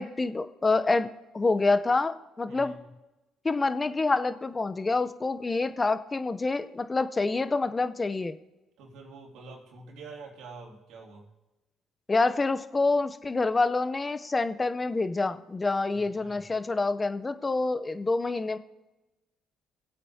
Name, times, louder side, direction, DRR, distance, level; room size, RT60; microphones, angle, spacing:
voice 1, 0.0-2.7 3.4-8.4 12.1-18.6, left 3 dB, 25° left, 11 dB, 0.7 m, -27 dB
voice 2, 2.5-2.9 8.8-11.3 15.9-16.5, right 3 dB, 75° right, 0 dB, 2.6 m, -46 dB
21.0 x 8.5 x 2.8 m, 1.0 s
supercardioid pair, 60°, 0 cm